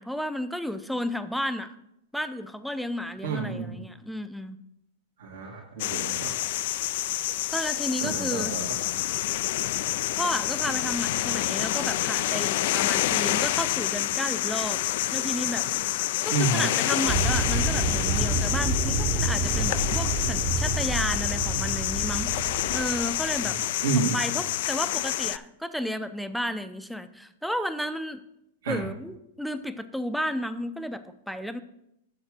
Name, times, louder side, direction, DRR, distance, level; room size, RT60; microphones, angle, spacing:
voice 1, 0.0-1.8 2.1-4.6 7.5-8.6 10.2-14.8 15.1-15.7 16.2-22.3 22.7-23.6 24.0-28.2 28.6-31.6, equal, ahead, 10 dB, 0.5 m, -32 dB
voice 2, 3.2-3.8 5.2-6.3 8.0-8.6 16.3-16.6 23.8-24.1 28.6-28.8, right 4 dB, 80° right, -3 dB, 1.7 m, -29 dB
sound 1, 5.8-25.4, left 15 dB, 60° left, 0.3 m, -28 dB
sound 2, 17.1-23.5, right 3 dB, 35° right, 0.8 m, -28 dB
6.8 x 6.2 x 6.0 m, 0.81 s
hypercardioid pair, 135°, 0 cm